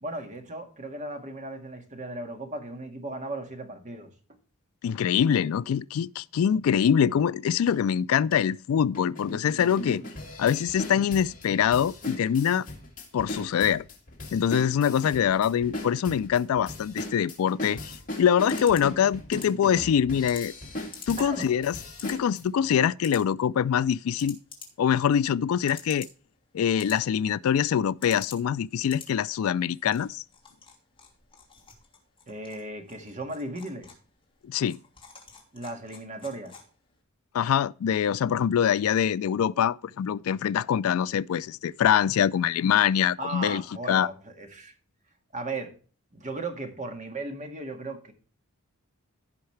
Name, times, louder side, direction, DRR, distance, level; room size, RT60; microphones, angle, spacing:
voice 1, 0.0-4.1 21.2-21.5 32.3-33.9 35.5-36.5 43.2-44.7 45.3-45.7 46.1-48.1, right 2 dB, 35° right, 1.8 m, -36 dB
voice 2, 4.8-10.0 10.4-12.7 13.1-13.8 14.3-17.9 18.2-20.5 21.1-21.8 22.0-24.4 24.8-26.1 26.5-30.2 34.5-34.8 37.3-43.6 43.9-44.1, left 8 dB, 70° left, 0.3 m, -24 dB
sound 1, 7.7-7.8 8.3-8.4 8.9-22.4, left 1 dB, 40° left, 2.6 m, -38 dB
sound 2, 18.0-37.0, left 6 dB, 25° left, 2.8 m, -50 dB
16.0 x 5.6 x 3.2 m
head